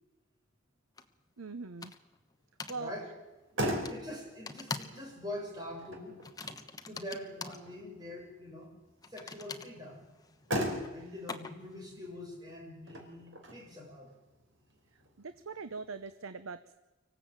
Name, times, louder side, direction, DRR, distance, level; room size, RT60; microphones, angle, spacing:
sound 1, 1.0-1.1 1.8-2.2 2.6-2.8 3.9-4.0 4.5-5.0 5.3-5.6 6.2-7.6 9.0-11.8, left 4 dB, 20° left, 1.0 m, -43 dB
voice 1, 1.4-1.9 2.7-2.9 15.2-16.7, right 4 dB, 85° right, 11 dB, 0.9 m, -41 dB
voice 2, 2.7-3.1 3.9-6.2 6.9-8.7 9.1-10.1 10.9-14.1, left 1 dB, 20° right, -1 dB, 6.1 m, -44 dB
Motor vehicle (road), 3.2-16.1, equal, 65° right, 4.4 m, -41 dB
25.0 x 15.0 x 8.9 m, 1.2 s
head